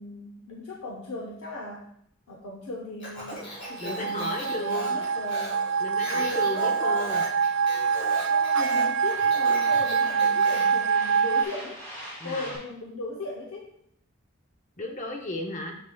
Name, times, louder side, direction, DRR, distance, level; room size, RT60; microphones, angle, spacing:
voice 1, 0.0-1.9 2.3-5.6 6.1-7.1 8.3-11.8 12.2-13.7, left 2 dB, 80° left, -1 dB, 0.7 m, -37 dB
Speech, 3.0-10.8, equal, 55° left, 2.2 m, -38 dB
sound 1, 3.2-12.6, equal, 10° left, 1.9 m, -46 dB
sound 2, 3.7-11.4, right 6 dB, 60° right, 0.4 m, -25 dB
voice 2, 3.8-5.0 5.8-7.2 12.2-12.5 14.8-15.8, left 1 dB, 35° left, 3 dB, 0.7 m, -34 dB
6.6 x 6.5 x 2.3 m, 0.73 s
head